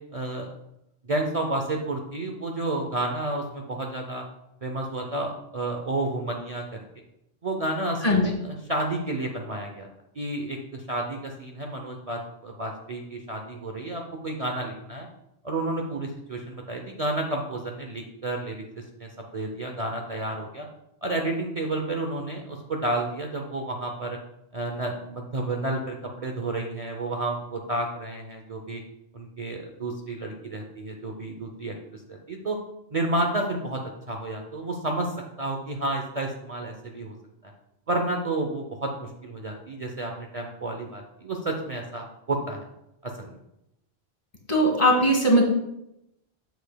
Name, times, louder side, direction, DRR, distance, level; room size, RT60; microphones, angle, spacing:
voice 1, 0.1-0.5 1.1-4.2 4.6-6.8 7.4-9.9 10.1-15.1 15.4-18.6 19.0-20.7 21.0-24.2 24.5-28.8 29.1-31.7 32.1-32.6 32.9-33.8 34.1-35.1 35.4-37.2 37.4-37.5 37.9-42.7 43.0-43.3, right 2 dB, 40° right, 2 dB, 0.6 m, -31 dB
voice 2, 44.5-45.5, equal, 35° left, 1 dB, 1.4 m, -19 dB
7.9 x 6.8 x 2.2 m, 0.85 s
omnidirectional pair, 1.1 m